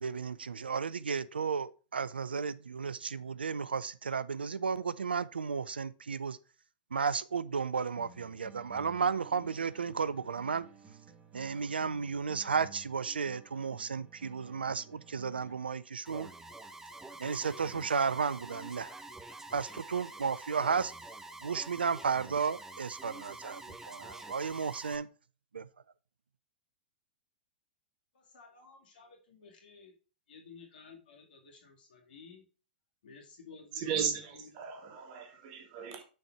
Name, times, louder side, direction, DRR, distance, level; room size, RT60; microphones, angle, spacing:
voice 1, 0.0-6.4 6.9-10.6 11.3-16.3 17.2-18.9 19.5-20.9 21.4-23.6 23.9-25.1 25.5-25.7, right 5 dB, 85° right, 0.4 m, -33 dB
sound 1, 8.0-15.9, right 7 dB, 25° right, 1.2 m, -55 dB
Alarm, 16.1-25.0, right 2 dB, 10° right, 0.7 m, -47 dB
voice 2, 28.1-29.9 30.3-32.4 33.0-34.6, left 5 dB, 65° left, 2.2 m, -54 dB
voice 3, 33.7-36.0, right 7 dB, 50° right, 1.6 m, -36 dB
6.4 x 4.2 x 4.6 m
figure-of-eight pair, 105°, 5 cm